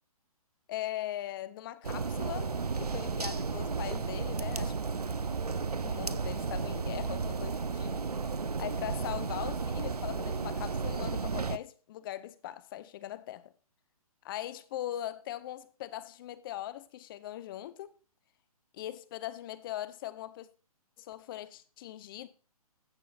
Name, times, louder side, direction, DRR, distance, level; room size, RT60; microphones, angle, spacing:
voice 1, 0.7-4.7 5.8-8.0 8.6-13.5 14.2-17.9 18.7-20.5 21.0-22.3, left 13 dB, 35° left, 0.9 m, -40 dB
sound 1, 1.8-11.6, right 4 dB, 90° right, 0.7 m, -33 dB
16.5 x 6.1 x 2.5 m
figure-of-eight pair, 130°, 19 cm